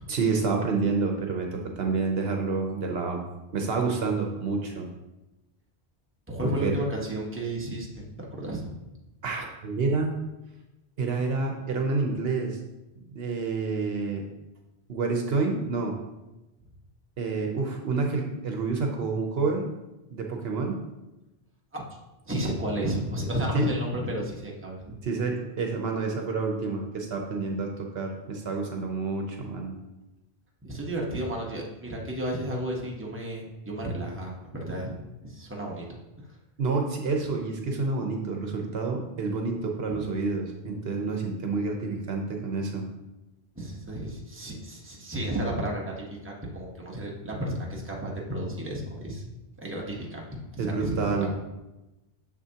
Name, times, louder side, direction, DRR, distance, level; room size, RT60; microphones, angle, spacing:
voice 1, 0.1-3.2 3.5-4.9 6.4-6.7 9.2-10.1 11.0-12.6 13.1-14.3 14.9-16.0 17.2-19.7 20.1-20.8 23.5-23.7 25.0-29.8 36.6-42.8 50.6-51.3, right 4 dB, 70° right, 2 dB, 1.0 m, -28 dB
voice 2, 6.3-8.7 21.7-21.8 22.3-25.0 30.6-35.0 35.2-35.9 36.2-36.3 39.9-40.1 43.5-49.2 49.6-51.3, right 1 dB, 10° right, -2 dB, 1.1 m, -32 dB
6.8 x 6.1 x 2.8 m, 1.0 s
omnidirectional pair, 1.1 m